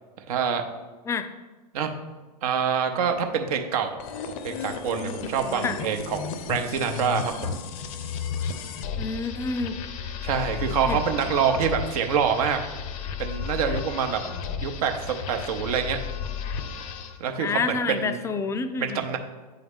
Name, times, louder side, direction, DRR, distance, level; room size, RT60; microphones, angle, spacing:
voice 1, 0.3-0.6 1.7-1.9 2.4-4.0 4.4-6.2 6.5-7.6 10.2-12.6 13.2-14.2 14.6-16.0 17.2-18.2 18.8-19.2, right 7 dB, 60° right, 5 dB, 0.8 m, -26 dB
sound 1, 4.0-17.2, left 6 dB, 55° left, 0.6 m, -33 dB
voice 2, 9.0-9.8 10.9-11.0 14.2-14.5 17.4-19.0, left 4 dB, 15° left, 10 dB, 0.3 m, -28 dB
8.4 x 3.9 x 3.5 m, 1.3 s
hypercardioid pair, 100°, 21 cm